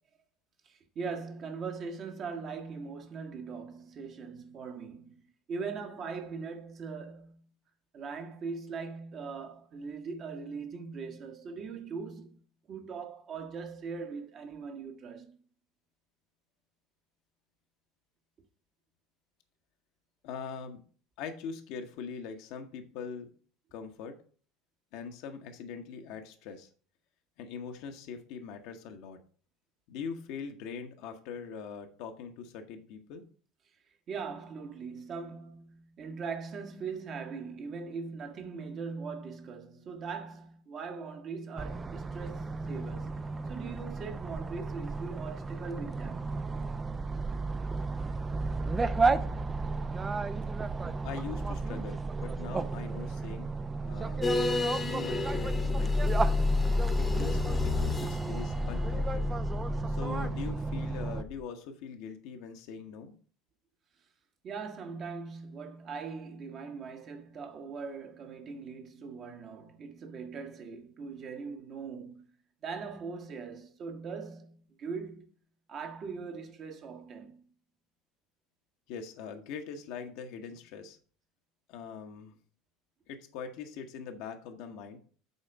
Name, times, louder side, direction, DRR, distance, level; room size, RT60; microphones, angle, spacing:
voice 1, 0.6-5.2 5.5-7.5 7.9-12.4 12.7-15.4 34.1-46.4 64.4-72.3 72.6-75.3 75.7-77.4, right 5 dB, 40° right, 1.3 m, -40 dB
voice 2, 20.2-20.8 21.2-23.3 23.7-24.2 24.9-26.7 27.4-29.2 29.9-33.2 51.0-53.5 53.8-54.3 54.8-56.3 56.9-59.3 59.9-63.1 78.9-81.0 81.7-82.4 83.1-85.0, left 6 dB, 55° left, 1.0 m, -42 dB
sound 1, 41.6-61.2, right 4 dB, 20° right, 0.5 m, -33 dB
sound 2, 54.2-61.4, left 3 dB, 20° left, 1.0 m, -30 dB
8.2 x 4.2 x 5.0 m
figure-of-eight pair, 65°, 0 cm